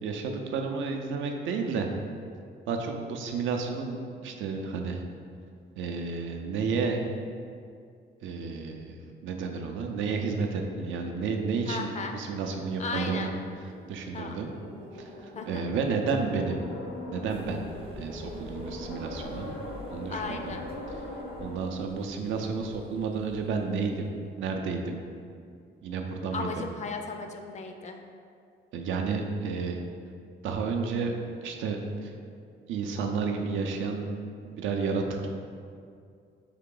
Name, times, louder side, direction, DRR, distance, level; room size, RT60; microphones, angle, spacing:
voice 1, 0.0-1.9 2.7-5.0 5.8-7.0 8.2-9.0 9.2-13.3 13.9-14.5 14.9-16.6 17.1-17.6 18.0-19.6 19.9-20.6 21.4-24.1 24.4-25.0 25.8-26.6 28.7-29.8 30.4-32.1 32.7-34.0 34.4-35.3, right 5 dB, 80° right, 3 dB, 0.5 m, -31 dB
voice 2, 11.7-12.1 12.8-13.3 14.1-14.4 15.3-15.7 20.1-20.6 26.3-28.0, left 4 dB, 35° left, 4 dB, 0.4 m, -36 dB
sound 1, 12.2-21.6, left 1 dB, 85° left, 0.7 m, -42 dB
sound 2, 17.3-24.2, equal, 30° right, 0.6 m, -48 dB
3.6 x 2.8 x 3.7 m, 2.3 s
cardioid pair, 90°, 20 cm